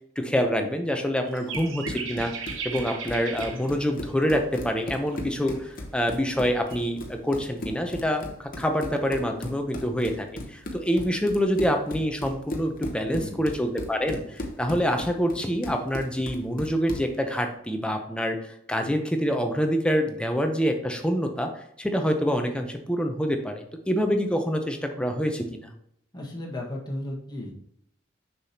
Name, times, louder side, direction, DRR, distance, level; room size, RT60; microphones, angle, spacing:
voice 1, 0.2-2.3 2.6-25.7, equal, 5° left, 4 dB, 0.6 m, -26 dB
sound 1, 1.2-3.7 4.7-5.6 6.4-6.8, right 6 dB, 85° right, 1.0 m, -37 dB
Run, 1.3-17.2, left 1 dB, 45° left, 0.9 m, -37 dB
voice 2, 13.0-13.4 26.1-27.5, left 1 dB, 20° left, -2 dB, 1.5 m, -35 dB
6.7 x 5.9 x 2.8 m, 0.73 s
head